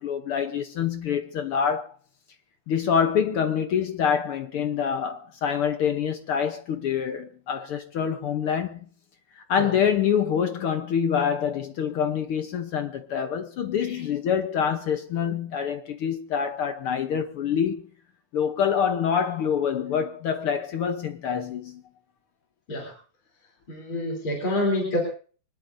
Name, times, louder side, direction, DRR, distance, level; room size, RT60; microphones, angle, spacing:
voice 1, 0.0-1.9 2.7-8.8 9.4-17.8 18.3-21.8, left 7 dB, 65° left, 1.4 m, -26 dB
voice 2, 23.7-25.0, left 1 dB, 40° left, 4.2 m, -27 dB
24.5 x 20.0 x 2.7 m
omnidirectional pair, 3.4 m